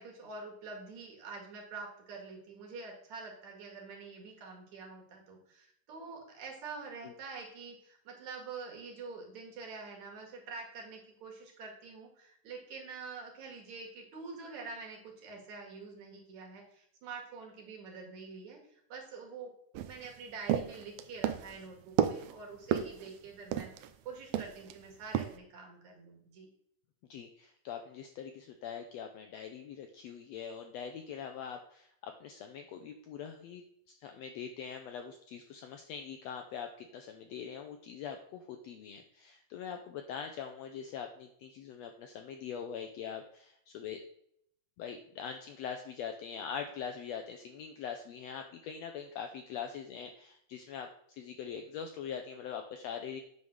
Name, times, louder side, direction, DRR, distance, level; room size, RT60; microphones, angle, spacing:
voice 1, 0.0-19.5 19.8-26.5, right 4 dB, 65° right, 0 dB, 3.1 m, -46 dB
sound 1, 19.7-24.0 24.3-24.8 25.1-25.4, right 10 dB, 90° right, 1.4 m, -32 dB
voice 2, 27.1-33.6 34.0-44.0 44.8-53.2, left 7 dB, 80° left, 6 dB, 1.5 m, -43 dB
9.3 x 3.6 x 6.3 m, 0.69 s
omnidirectional pair, 3.7 m